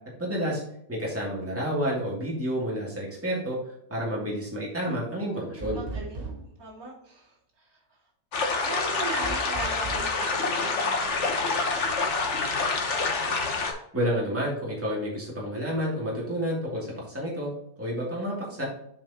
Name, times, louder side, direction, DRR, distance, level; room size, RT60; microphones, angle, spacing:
voice 1, 0.2-0.6 0.9-3.6 3.9-5.8 13.9-17.5 17.8-18.6, equal, 10° right, -5 dB, 2.5 m, -30 dB
voice 2, 4.8-7.8 8.6-12.0, right 2 dB, 60° right, -5 dB, 2.7 m, -40 dB
sound 1, 5.6-6.6 9.2-10.1, right 3 dB, 35° right, 1.9 m, -36 dB
sound 2, 8.3-13.7, left 4 dB, 50° left, 1.3 m, -27 dB
7.8 x 5.0 x 2.9 m, 0.73 s
omnidirectional pair, 1.8 m